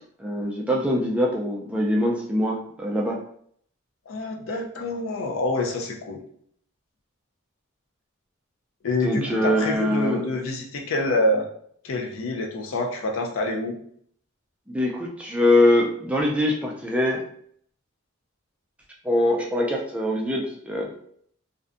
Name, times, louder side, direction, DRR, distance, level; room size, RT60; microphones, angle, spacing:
voice 1, 0.2-3.2 9.0-10.2 14.7-17.2 19.0-20.9, left 1 dB, 5° right, -2 dB, 0.3 m, -23 dB
voice 2, 4.1-6.2 8.8-11.5 11.8-13.8, left 2 dB, 75° left, 3 dB, 0.5 m, -26 dB
2.5 x 2.1 x 2.4 m, 0.63 s
head